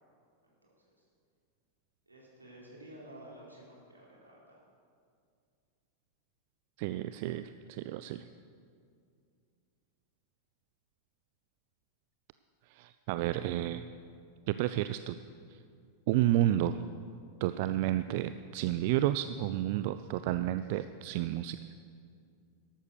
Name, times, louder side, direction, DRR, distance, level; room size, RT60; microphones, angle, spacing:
voice 1, 0.4-1.1 2.1-4.6, right 1 dB, 80° right, -5 dB, 4.3 m, -52 dB
voice 2, 6.8-8.3 12.7-13.9 14.5-15.2 16.1-16.8 17.4-21.6, right 13 dB, 50° right, 12 dB, 0.4 m, -31 dB
13.0 x 12.0 x 6.5 m, 2.3 s
figure-of-eight pair, 90°, 0 cm